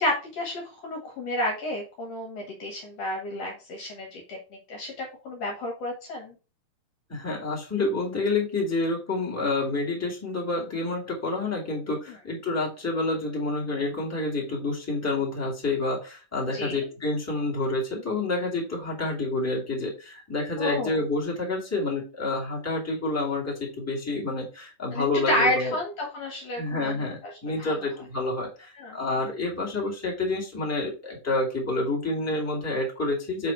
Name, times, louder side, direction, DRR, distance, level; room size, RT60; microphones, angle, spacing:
voice 1, 0.0-4.4 4.7-6.3 16.5-16.9 20.6-21.0 24.9-27.3 27.6-27.7 28.8-29.0, left 1 dB, 60° left, 0 dB, 2.4 m, -30 dB
voice 2, 7.1-25.7 26.5-33.5, left 2 dB, 5° left, -3 dB, 2.3 m, -28 dB
7.2 x 4.1 x 4.5 m, 0.32 s
omnidirectional pair, 3.6 m